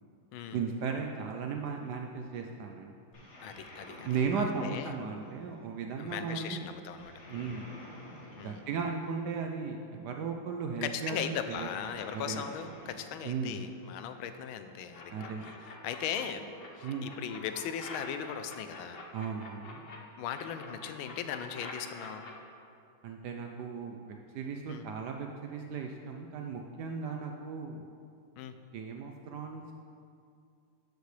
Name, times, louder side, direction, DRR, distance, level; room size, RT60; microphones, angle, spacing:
voice 1, 0.5-2.9 4.0-6.7 7.3-7.7 8.4-11.7 12.1-12.5 13.2-13.7 15.1-15.5 16.8-17.1 19.1-19.8 23.0-27.9 28.7-29.7, right 5 dB, 75° right, 3 dB, 0.9 m, -36 dB
sound 1, 3.1-5.7 7.0-9.5 11.5-14.0, equal, 40° left, 1.5 m, -50 dB
voice 2, 3.4-4.1 4.4-4.9 6.0-7.6 8.4-8.7 10.8-16.4 16.8-19.0 20.2-22.3 24.7-24.8 28.4-28.6, left 8 dB, 85° left, 9 dB, 1.4 m, -39 dB
sound 2, 14.9-16.2 16.6-20.0 20.3-22.3, left 3 dB, 55° left, 0.6 m, -46 dB
11.5 x 6.6 x 3.2 m, 2.5 s
omnidirectional pair, 2.2 m